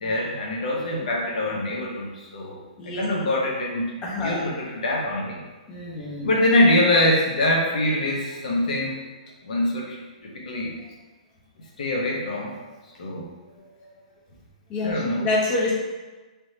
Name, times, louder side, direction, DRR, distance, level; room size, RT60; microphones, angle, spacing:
voice 1, 0.0-5.4 6.2-9.0 9.4-10.8 11.8-12.6 13.0-13.3 13.6-13.9 14.8-15.3, left 1 dB, 70° left, -2 dB, 0.8 m, -24 dB
voice 2, 0.7-1.1 2.8-3.0 4.0-4.4 5.7-6.3 14.7-15.7, left 2 dB, 20° left, -4 dB, 0.7 m, -28 dB
3.4 x 2.9 x 2.7 m, 1.2 s
hypercardioid pair, 150°, 4 cm